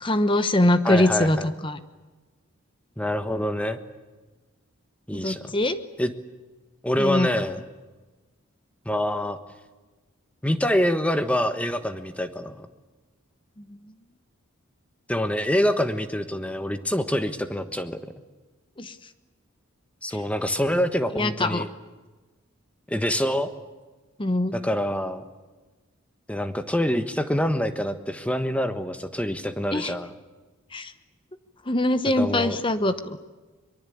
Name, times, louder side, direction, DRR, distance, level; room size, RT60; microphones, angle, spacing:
voice 1, 0.0-1.8 5.1-5.8 7.0-7.3 18.8-19.0 21.1-21.7 24.2-24.5 29.7-29.9 30.7-30.9 31.7-33.2, left 1 dB, 25° left, 11 dB, 1.0 m, -23 dB
voice 2, 0.8-1.5 3.0-3.8 5.1-5.5 6.0-6.1 6.8-7.6 8.8-9.4 10.4-12.7 15.1-18.0 20.0-21.7 22.9-23.5 24.5-25.2 26.3-30.1 32.2-32.6, equal, 5° left, 9 dB, 1.4 m, -26 dB
23.5 x 23.5 x 8.7 m, 1.3 s
head